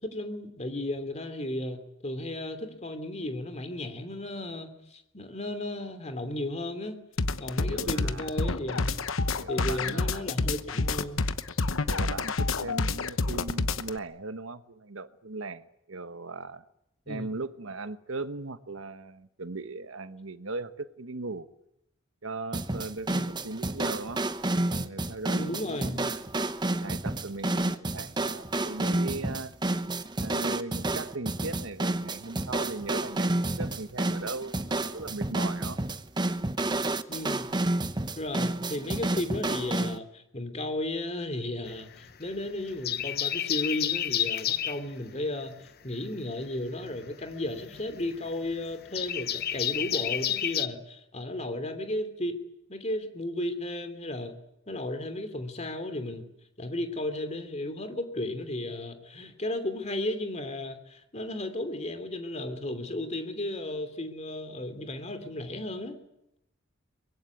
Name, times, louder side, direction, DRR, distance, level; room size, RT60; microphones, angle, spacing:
voice 1, 0.0-7.0 7.4-8.9 9.5-11.3 17.1-17.3 23.1-23.3 25.3-26.0 37.1-37.5 38.2-45.6 45.8-52.4 52.7-54.3 54.7-56.2 56.6-66.0, left 1 dB, 35° left, 8 dB, 2.9 m, -34 dB
sound 1, 7.2-14.0, left 3 dB, 80° left, 1.1 m, -28 dB
voice 2, 7.7-8.4 9.4-10.3 11.9-16.6 17.1-21.5 22.2-24.2 24.7-26.2 26.8-29.5 30.2-35.8, right 3 dB, 85° right, 11 dB, 1.3 m, -38 dB
sound 2, 22.5-40.0, right 2 dB, 20° right, 0.9 m, -30 dB
sound 3, 41.7-42.4 42.7-44.8 46.5-50.7, left 10 dB, 50° left, 0.9 m, -30 dB
24.0 x 21.5 x 9.5 m, 0.83 s
head